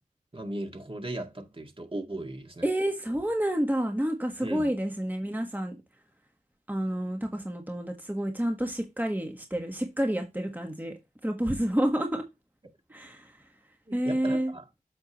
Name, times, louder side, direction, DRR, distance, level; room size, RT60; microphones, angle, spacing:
voice 1, 0.3-2.7 4.4-4.7 13.9-14.7, right 1 dB, 40° right, 1.9 m, -37 dB
voice 2, 2.6-5.7 6.7-10.9 11.2-12.2 12.9-13.4 13.9-14.5, right 1 dB, 10° right, 1.4 m, -29 dB
7.9 x 6.7 x 3.0 m
wide cardioid pair, 55°, 15 cm